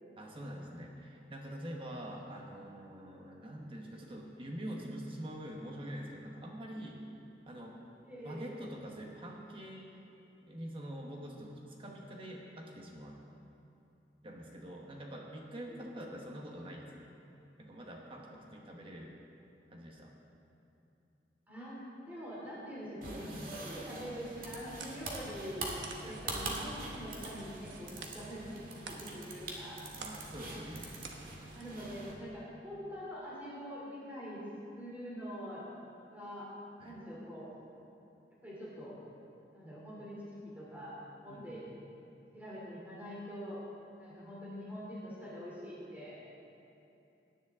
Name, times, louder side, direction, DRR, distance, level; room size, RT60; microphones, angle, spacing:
voice 1, 0.2-7.0 7.4-7.8 8.2-10.0 10.5-13.2 14.2-17.1 17.6-19.1 19.7-20.1 26.0-26.2 27.9-28.0 30.0-30.9 36.8-37.0 41.3-41.7, equal, 30° right, 0 dB, 1.2 m, -45 dB
voice 2, 8.0-8.4 15.7-15.8 21.5-21.8 22.1-25.7 26.0-29.8 31.5-34.4 34.7-35.7 36.1-36.5 36.8-37.5 38.4-39.0 39.5-41.7 42.3-43.6 44.0-46.3, equal, 10° right, -7 dB, 2.9 m, -44 dB
sound 1, 23.0-32.1, right 2 dB, 50° right, 1.9 m, -43 dB
sound 2, 24.2-31.8, right 4 dB, 85° right, 1.1 m, -53 dB
17.5 x 10.5 x 3.6 m, 2.8 s
head